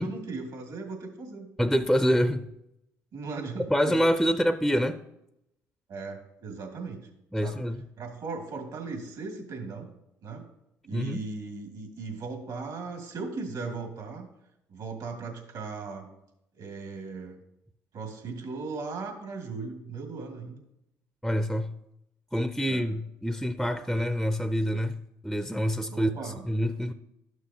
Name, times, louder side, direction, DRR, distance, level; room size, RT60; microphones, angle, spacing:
voice 1, 0.0-1.5 3.1-4.0 5.9-7.1 7.4-7.6 8.0-9.9 10.2-10.4 10.8-14.3 14.7-16.1 16.5-17.4 17.9-20.6 22.7-22.8 25.9-26.4, right 4 dB, 65° right, 2 dB, 2.3 m, -37 dB
voice 2, 1.6-2.5 3.7-5.0 7.3-7.8 10.9-11.2 21.2-21.7 22.3-25.0 25.2-26.9, equal, ahead, 10 dB, 0.5 m, -26 dB
12.0 x 6.3 x 2.8 m, 0.83 s
hypercardioid pair, 60°, 8 cm